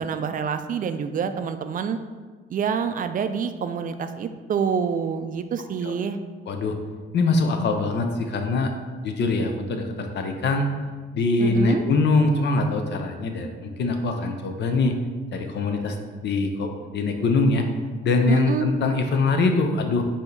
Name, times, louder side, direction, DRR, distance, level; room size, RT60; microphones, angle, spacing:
voice 1, 0.0-2.0 2.5-6.2 11.4-11.8 18.3-18.7, right 7 dB, 45° right, 9 dB, 0.4 m, -27 dB
voice 2, 6.5-6.8 7.1-8.7 9.0-10.7 11.1-15.0 15.3-16.0 16.2-17.7 18.0-20.0, left 3 dB, 60° left, 5 dB, 0.6 m, -23 dB
4.9 x 2.8 x 3.9 m, 1.4 s
cardioid pair, 90°, 20 cm